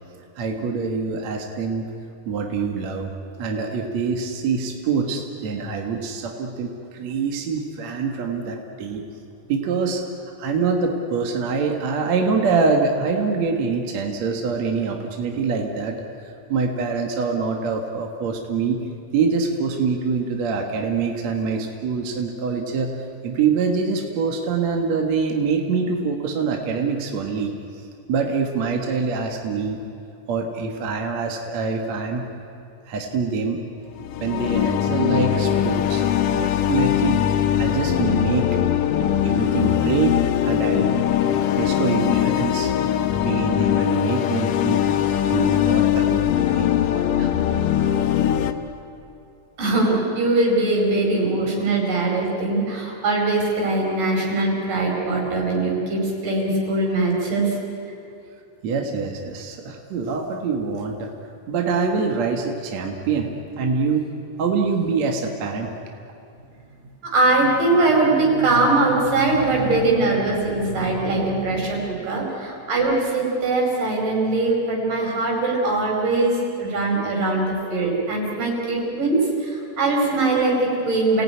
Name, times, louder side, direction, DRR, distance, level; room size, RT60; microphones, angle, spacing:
voice 1, 0.4-1.9 2.3-3.1 3.4-9.0 9.5-10.0 10.4-16.0 16.2-18.8 19.1-22.9 23.2-27.5 28.1-29.8 30.3-32.2 32.9-33.6 34.2-36.1 36.3-37.2 37.6-38.5 39.2-40.9 41.6-42.7 43.2-44.8 45.3-47.3 58.6-61.1 61.5-64.0 64.4-65.7, right 5 dB, 60° right, 2 dB, 2.8 m, -25 dB
sound 1, 33.9-48.5, left 11 dB, 85° left, 2.7 m, -21 dB
voice 2, 49.6-57.6 67.0-81.2, right 2 dB, 85° right, -1 dB, 6.6 m, -21 dB
30.0 x 18.0 x 9.8 m, 2.6 s
omnidirectional pair, 3.7 m